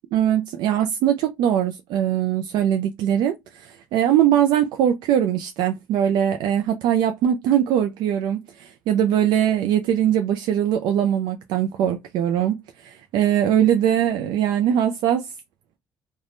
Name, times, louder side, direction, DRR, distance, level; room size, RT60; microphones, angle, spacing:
voice 1, 0.1-15.3, right 10 dB, 80° right, 0.4 m, -21 dB
3.3 x 2.1 x 2.5 m
supercardioid pair, 75°, 7 cm